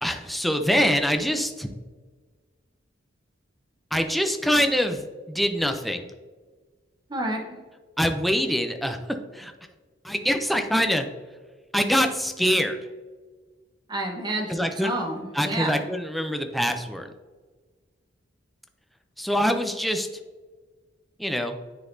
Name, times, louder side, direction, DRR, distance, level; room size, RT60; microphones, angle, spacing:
voice 1, 0.0-1.7 3.9-6.1 8.0-9.0 9.3-9.5 10.0-11.1 11.7-12.8 14.5-14.9 15.3-17.1 19.2-20.1 21.2-21.6, equal, ahead, 6 dB, 0.4 m, -24 dB
voice 2, 7.1-7.4 13.9-15.8, right 1 dB, 25° right, 1 dB, 1.0 m, -29 dB
9.7 x 4.0 x 2.6 m, 1.4 s
head